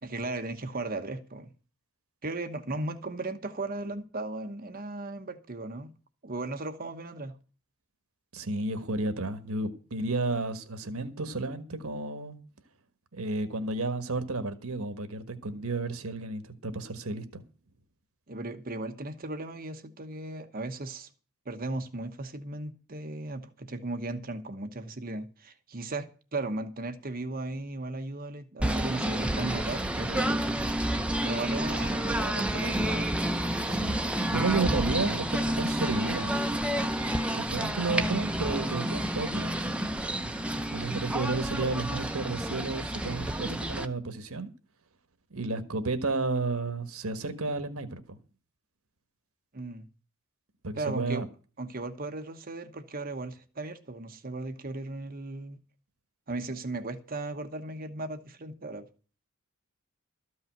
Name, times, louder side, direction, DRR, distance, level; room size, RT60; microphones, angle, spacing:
voice 1, 0.0-1.5 2.2-5.9 6.2-7.3 18.3-21.1 21.5-30.5 31.2-33.1 49.5-49.9 50.8-51.2 51.6-55.6 56.3-58.9, right 2 dB, 40° right, 1.0 m, -36 dB
voice 2, 8.3-12.4 13.1-17.4 33.7-34.0 34.3-36.4 37.3-39.6 40.7-44.5 45.3-48.2 50.6-51.3, right 3 dB, 75° right, 1.4 m, -32 dB
Singing / Bird, 28.6-43.9, right 1 dB, 5° right, 0.7 m, -29 dB
13.5 x 5.6 x 9.0 m
head